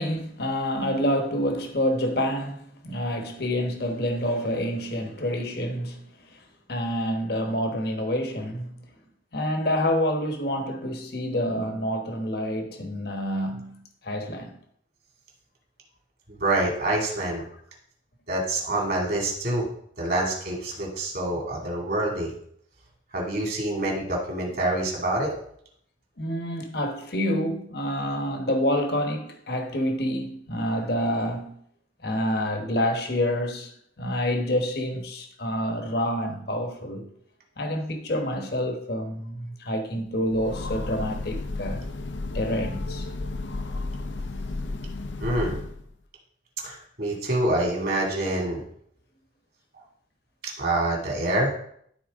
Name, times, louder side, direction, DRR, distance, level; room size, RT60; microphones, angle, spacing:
voice 1, 0.0-6.0 6.3-6.4 6.7-8.8 9.3-14.6 26.2-31.6 32.0-33.7 34.0-37.1 37.6-41.8 42.3-43.1, equal, 55° left, 1.2 m, -27 dB
voice 2, 16.3-17.4 18.3-19.7 20.0-22.3 23.1-25.3 45.2-45.6 46.6-48.6 50.6-51.5, right 1 dB, 50° right, 2.5 m, -26 dB
Train, 40.2-45.9, left 2 dB, 70° left, 0.6 m, -33 dB
12.5 x 4.4 x 3.7 m
head